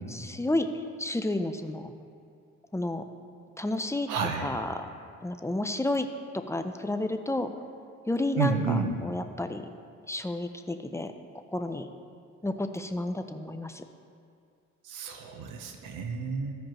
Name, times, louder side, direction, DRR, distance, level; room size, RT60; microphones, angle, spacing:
voice 1, 0.1-1.9 2.7-3.0 3.6-4.1 4.4-4.9 5.2-6.1 6.3-7.5 8.1-9.6 10.1-11.1 11.5-11.9 12.4-13.8, left 2 dB, 10° left, 7 dB, 0.5 m, -31 dB
voice 2, 4.1-4.6 8.4-8.9 14.8-16.5, right 5 dB, 85° right, 4 dB, 0.9 m, -30 dB
15.0 x 5.1 x 3.0 m, 2.3 s
cardioid pair, 90°, 30 cm